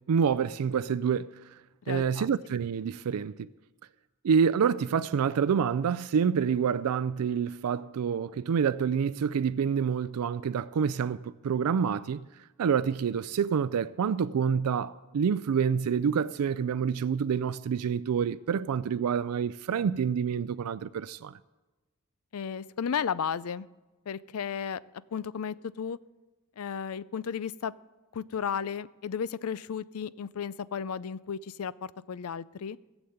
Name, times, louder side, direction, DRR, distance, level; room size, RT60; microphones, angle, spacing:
voice 1, 0.1-1.3 1.9-3.5 4.2-12.2 12.6-21.4, right 7 dB, 85° right, 0.4 m, -27 dB
voice 2, 1.8-2.3 22.3-23.7 24.1-24.8 25.1-26.0 26.6-27.7 28.1-32.8, left 7 dB, 75° left, 0.4 m, -34 dB
16.0 x 7.1 x 7.9 m
head